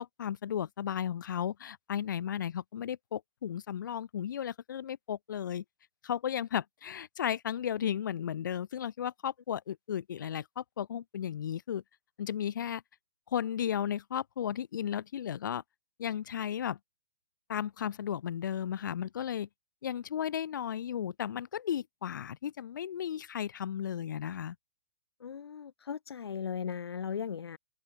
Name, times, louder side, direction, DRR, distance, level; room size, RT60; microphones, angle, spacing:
voice 1, 0.0-5.6 6.0-11.8 12.2-12.8 13.3-15.6 16.0-16.8 17.5-19.5 19.8-24.6, left 9 dB, 50° left, 5.3 m, -34 dB
voice 2, 25.2-27.6, left 7 dB, 80° left, 2.9 m, -37 dB
open air
hypercardioid pair, 175°, 13 cm